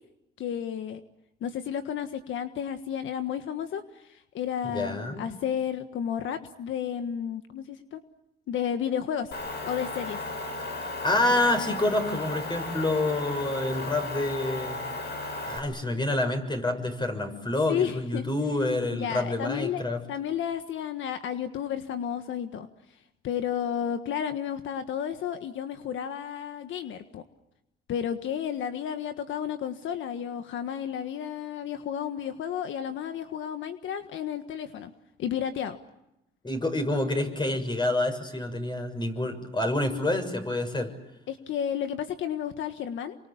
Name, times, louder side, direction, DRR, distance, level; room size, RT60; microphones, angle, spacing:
voice 1, 0.4-1.0 1.4-8.0 8.5-9.3 9.6-10.2 17.7-18.3 18.9-19.8 20.1-22.7 23.2-27.2 27.9-34.9 35.2-35.8 41.3-43.2, left 9 dB, 75° left, 8 dB, 1.6 m, -32 dB
voice 2, 4.7-5.3 11.0-14.8 15.5-20.0 36.4-40.9, left 2 dB, 25° left, 6 dB, 6.5 m, -27 dB
Motor vehicle (road) / Engine, 9.3-15.6, left 2 dB, 60° left, 6.6 m, -35 dB
28.5 x 25.0 x 8.5 m, 0.90 s
cardioid pair, 90°, 20 cm